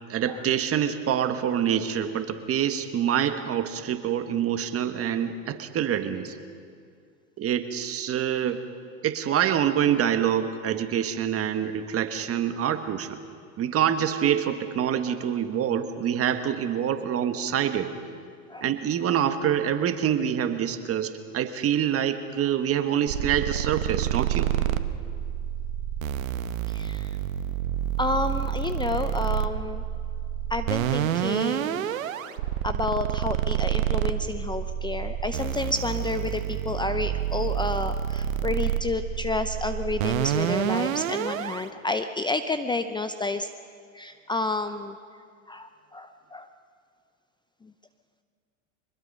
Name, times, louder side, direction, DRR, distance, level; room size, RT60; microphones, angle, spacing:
voice 1, 0.1-6.3 7.4-8.6 9.0-13.2 13.6-17.9 18.6-24.5, right 9 dB, 35° right, 8 dB, 1.6 m, -26 dB
sound 1, 23.1-41.6, right 11 dB, 75° right, 1.1 m, -28 dB
voice 2, 26.7-27.2 28.0-29.8 30.5-31.8 32.6-43.5 43.9-45.0 45.5-46.5 47.6-47.7, left 3 dB, 10° left, 9 dB, 0.6 m, -30 dB
24.5 x 21.0 x 5.5 m, 2.2 s
hypercardioid pair, 100°, 40 cm